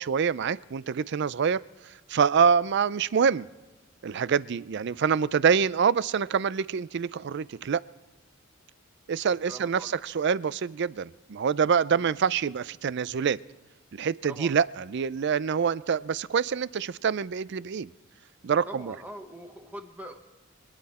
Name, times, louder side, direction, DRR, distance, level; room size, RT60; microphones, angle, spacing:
voice 1, 0.0-1.6 2.1-3.5 4.0-7.8 9.1-13.4 13.9-17.9 18.4-18.9, right 6 dB, 60° right, 19 dB, 0.4 m, -26 dB
voice 2, 9.5-10.0 11.9-12.1 14.3-14.6 18.7-20.2, right 1 dB, 10° right, 4 dB, 1.1 m, -43 dB
25.0 x 10.0 x 4.2 m, 1.2 s
head